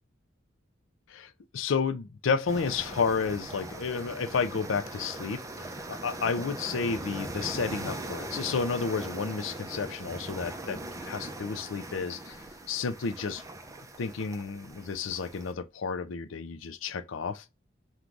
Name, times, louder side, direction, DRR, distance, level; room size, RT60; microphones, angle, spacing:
voice 1, 1.1-5.4 5.9-12.4 12.7-13.4 14.0-17.4, left 5 dB, 85° left, 0.5 m, -31 dB
sound 1, 2.5-15.5, right 1 dB, 15° right, 0.6 m, -40 dB
3.8 x 2.3 x 4.6 m
head